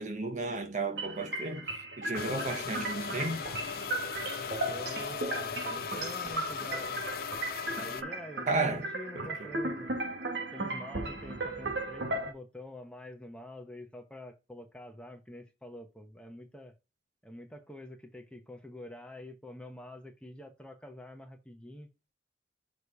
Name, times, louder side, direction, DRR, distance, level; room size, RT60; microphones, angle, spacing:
voice 1, 0.0-3.4 8.5-8.9 9.1-9.5, right 3 dB, 45° right, 1.2 m, -34 dB
sound 1, 1.0-12.3, right 2 dB, 80° right, 1.7 m, -36 dB
sound 2, 2.1-8.0, left 7 dB, 55° left, 0.5 m, -38 dB
voice 2, 4.6-7.1 7.7-9.9 10.5-16.7 17.2-21.9, left 1 dB, 5° left, 1.0 m, -47 dB
6.6 x 3.2 x 5.5 m
head